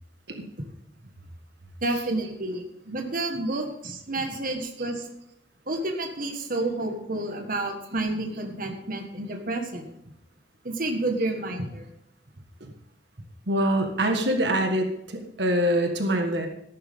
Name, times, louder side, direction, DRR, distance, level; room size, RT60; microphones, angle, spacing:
voice 1, 1.8-5.1 5.7-9.9 10.6-11.9, right 2 dB, 50° right, 3 dB, 1.7 m, -30 dB
voice 2, 13.5-16.5, right 1 dB, 65° right, 4 dB, 1.6 m, -25 dB
14.0 x 12.0 x 3.7 m, 0.81 s
head